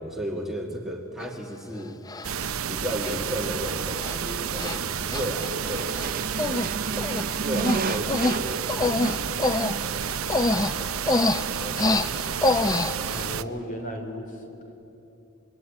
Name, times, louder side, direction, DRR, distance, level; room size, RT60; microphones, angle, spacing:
voice 1, 0.0-2.0 2.7-6.0 7.4-9.6 11.6-12.6, equal, ahead, 0 dB, 1.9 m, -34 dB
Human voice, 1.2-1.3 2.1-2.5 3.0-3.1 3.5-3.7 4.0-4.2 4.6-4.8 5.1-6.1 6.4-6.7 7.0-13.2, left 2 dB, 15° left, 0.6 m, -26 dB
sound 1, 2.2-13.4, right 7 dB, 75° right, 0.8 m, -30 dB
sound 2, 5.5-10.6, right 4 dB, 40° right, 0.6 m, -33 dB
voice 2, 13.1-14.7, equal, 40° left, 4 dB, 3.6 m, -35 dB
26.5 x 22.5 x 9.9 m, 2.9 s
head